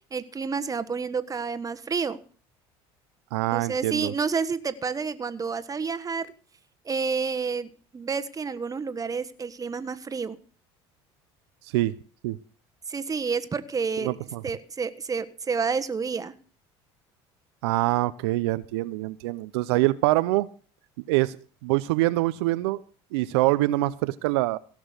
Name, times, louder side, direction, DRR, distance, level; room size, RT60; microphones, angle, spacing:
voice 1, 0.1-2.2 3.5-6.3 6.8-10.4 12.9-14.1 14.4-16.3, right 5 dB, 25° right, 1.3 m, -29 dB
voice 2, 3.3-4.1 11.7-11.9 12.2-12.4 14.0-14.4 17.6-20.5 21.1-21.4 21.6-22.8 23.1-24.6, right 18 dB, 85° right, 0.6 m, -24 dB
16.5 x 6.2 x 8.2 m
supercardioid pair, 85°, 13 cm